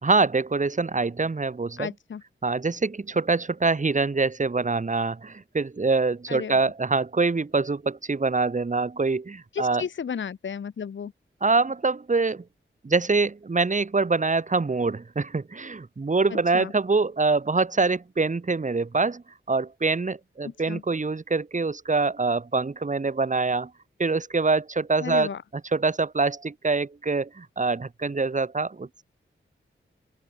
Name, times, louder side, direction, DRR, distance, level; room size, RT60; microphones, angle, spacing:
voice 1, 0.0-1.9 2.4-9.8 11.4-12.4 12.8-23.7 24.0-29.0, right 3 dB, 35° right, 2.1 m, -25 dB
voice 2, 1.8-2.2 6.3-6.5 9.5-11.1 16.3-16.7 20.4-20.8 25.0-25.4, left 7 dB, 65° left, 0.8 m, -33 dB
open air
wide cardioid pair, 115°, 21 cm